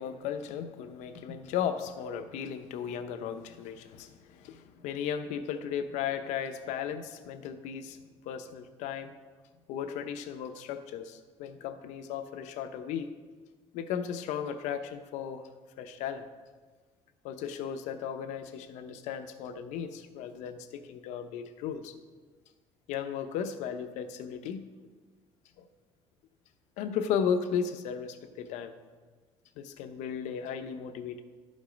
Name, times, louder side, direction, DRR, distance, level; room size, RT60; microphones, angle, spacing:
voice 1, 0.0-8.0 8.2-9.1 9.7-13.1 13.7-15.4 15.8-16.3 17.2-22.0 22.9-24.6 26.8-28.7 29.6-31.2, left 8 dB, 90° left, 9 dB, 0.8 m, -35 dB
12.0 x 5.3 x 5.2 m, 1.4 s
cardioid pair, 165°, 12 cm